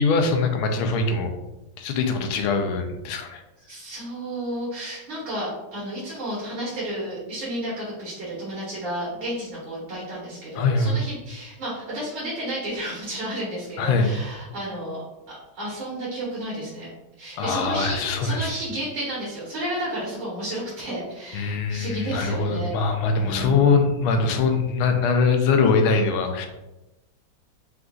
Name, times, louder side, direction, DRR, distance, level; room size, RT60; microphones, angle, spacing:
voice 1, 0.0-1.3 1.8-3.4 10.5-11.0 13.8-14.2 17.4-18.5 21.3-26.5, left 4 dB, 85° left, 4 dB, 1.5 m, -22 dB
voice 2, 3.7-15.0 15.3-16.9 17.2-22.7 23.2-23.8, right 1 dB, 75° right, -8 dB, 2.3 m, -32 dB
5.0 x 3.5 x 2.4 m, 1.0 s
omnidirectional pair, 2.3 m